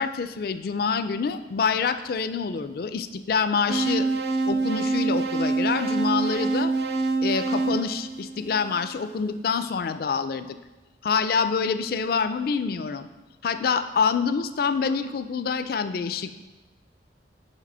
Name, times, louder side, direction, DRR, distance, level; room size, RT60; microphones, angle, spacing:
voice 1, 0.0-4.1 4.5-6.7 7.2-10.5 11.0-13.1 13.4-16.3, left 5 dB, 55° left, 11 dB, 0.4 m, -26 dB
sound 1, 3.7-8.8, right 3 dB, 70° right, 0.5 m, -26 dB
5.5 x 5.0 x 5.4 m, 1.1 s
head